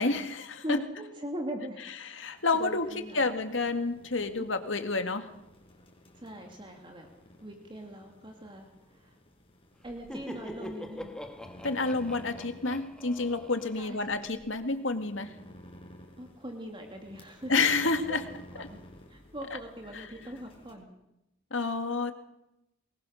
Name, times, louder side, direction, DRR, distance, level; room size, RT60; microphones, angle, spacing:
voice 1, 0.0-0.8 2.0-2.9 3.1-5.3 11.6-15.4 17.5-18.3 18.6-18.7 19.9-20.1 21.5-22.1, left 3 dB, 75° left, 7 dB, 2.1 m, -29 dB
voice 2, 0.6-1.8 2.5-3.3 6.2-7.1 7.4-9.2 9.8-11.2 13.8-14.2 16.2-17.5 18.1-18.2 18.5-18.8 19.1-20.9, right 1 dB, 25° right, 3 dB, 2.4 m, -41 dB
sound 1, 2.4-20.7, equal, 30° left, 5.2 m, -54 dB
Laughter, 9.8-14.5, left 1 dB, 5° left, 1.6 m, -44 dB
23.5 x 20.0 x 6.5 m, 0.89 s
head